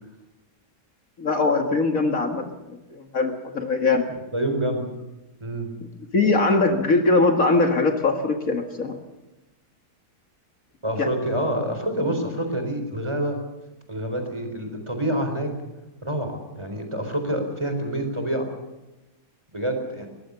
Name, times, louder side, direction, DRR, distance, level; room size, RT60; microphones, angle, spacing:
voice 1, 1.2-4.1 6.1-9.0 11.0-11.1, left 3 dB, 55° left, 5 dB, 2.2 m, -21 dB
voice 2, 4.3-4.8 5.4-5.7 10.8-13.4 13.9-15.5 16.0-18.5 19.5-20.1, right 1 dB, 15° right, 5 dB, 4.1 m, -27 dB
21.5 x 19.0 x 6.9 m, 1.0 s
omnidirectional pair, 1.7 m